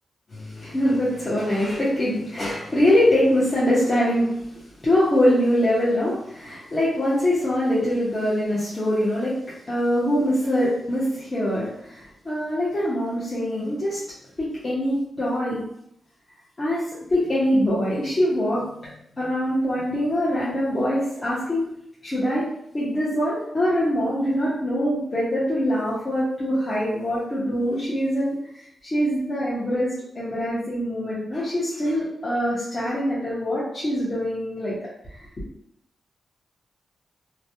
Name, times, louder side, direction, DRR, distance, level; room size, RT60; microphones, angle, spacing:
voice 1, 0.3-4.5 4.8-9.4 9.7-14.0 14.4-15.6 16.6-21.7 22.0-22.5 22.7-28.7 28.9-34.8 35.1-35.3, equal, 35° left, -10 dB, 0.9 m, -23 dB
3.0 x 2.2 x 2.7 m, 0.75 s
cardioid pair, 80°, 0 cm